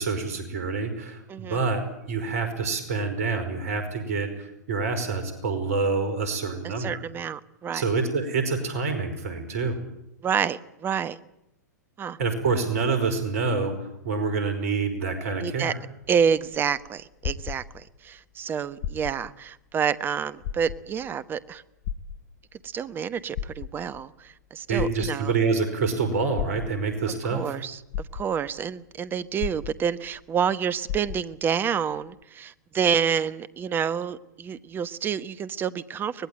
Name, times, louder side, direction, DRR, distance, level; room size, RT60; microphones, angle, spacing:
voice 1, 0.0-7.0 7.7-9.8 12.2-15.8 24.7-27.5, right 4 dB, 55° right, 9 dB, 5.1 m, -27 dB
voice 2, 6.6-7.8 10.2-11.2 12.0-12.2 15.4-15.7 16.1-21.6 22.6-25.3 27.3-27.8 28.1-36.3, right 7 dB, 20° right, 15 dB, 1.1 m, -28 dB
sound 1, 16.0-18.1 18.7-19.4 19.8-19.9 20.4-21.1 21.8-22.7 23.2-24.0 24.8-25.5 26.4-27.1 27.6-27.7 27.9-28.6 29.4-30.2 30.5-30.6 30.9-31.5 32.2-32.3, left 9 dB, 45° left, 1.4 m, -34 dB
24.0 x 20.0 x 8.9 m, 0.83 s
figure-of-eight pair, 100°, 9 cm